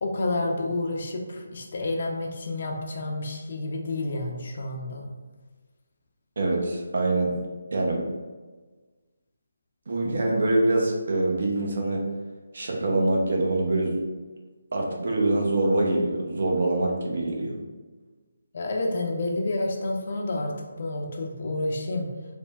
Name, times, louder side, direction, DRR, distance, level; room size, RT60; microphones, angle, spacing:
voice 1, 0.0-5.1 18.5-22.1, left 2 dB, 50° left, 1 dB, 0.5 m, -29 dB
voice 2, 6.4-7.3 7.7-8.1 9.9-12.0 12.5-14.0 14.7-17.6, right 2 dB, 55° right, -1 dB, 0.6 m, -24 dB
3.3 x 2.1 x 2.3 m, 1.3 s
figure-of-eight pair, 150°, 0 cm